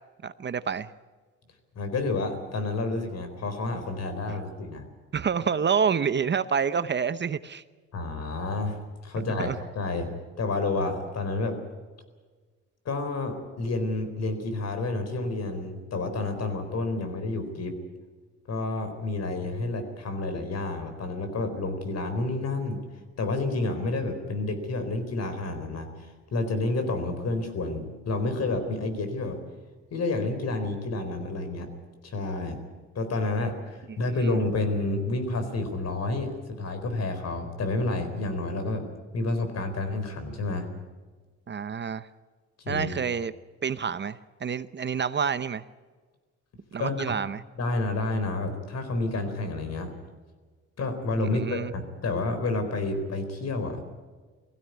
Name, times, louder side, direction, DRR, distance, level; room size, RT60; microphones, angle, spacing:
voice 1, 0.2-0.9 5.1-7.6 9.4-9.6 34.2-34.4 41.5-42.1 42.7-43.3 43.6-45.6 46.7-47.4 51.2-51.7, right 6 dB, 35° right, 14 dB, 0.8 m, -28 dB
voice 2, 1.7-4.8 7.9-10.1 10.4-11.6 12.8-17.8 18.5-22.8 23.2-29.4 29.9-31.7 32.0-32.6 32.9-38.8 39.1-40.7 42.6-42.9 46.8-47.0 47.6-49.9 50.8-53.9, left 2 dB, 55° left, 8 dB, 4.3 m, -29 dB
19.5 x 16.0 x 9.4 m, 1.4 s
cardioid pair, 90°, 30 cm